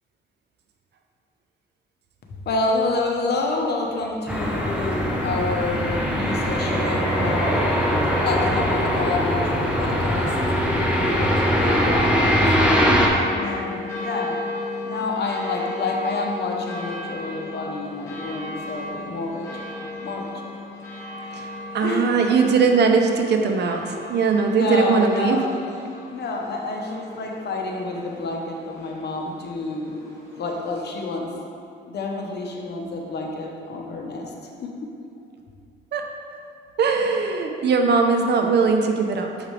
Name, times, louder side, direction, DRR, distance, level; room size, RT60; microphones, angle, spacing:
voice 1, 2.5-7.6 8.2-10.3 10.9-12.8 13.4-14.4 14.8-19.6 20.0-20.3 21.8-22.1 24.4-25.5 26.1-30.0 30.4-31.3 31.9-34.3 34.6-34.7, left 3 dB, 55° left, 0 dB, 1.0 m, -28 dB
sound 1, 4.3-13.1, equal, 5° right, 1.0 m, -21 dB
sound 2, 11.2-30.6, left 2 dB, 15° left, 1.5 m, -35 dB
voice 2, 21.3-25.4 35.9-36.0 36.8-39.3, right 5 dB, 60° right, 4 dB, 0.7 m, -20 dB
7.2 x 4.9 x 3.3 m, 2.5 s
cardioid pair, 90°, 20 cm